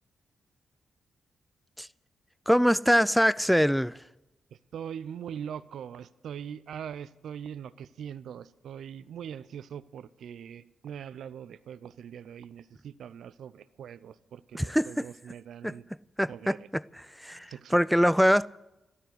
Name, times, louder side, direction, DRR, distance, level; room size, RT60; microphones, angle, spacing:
voice 1, 2.5-4.0 14.5-15.1 15.6-15.8 16.2-18.5, equal, ahead, 0.4 m, -24 dB
voice 2, 4.5-15.8 16.3-16.6 17.5-17.8, right 8 dB, 75° right, 0.6 m, -42 dB
13.5 x 13.0 x 8.0 m
hypercardioid pair, 45°, 0 cm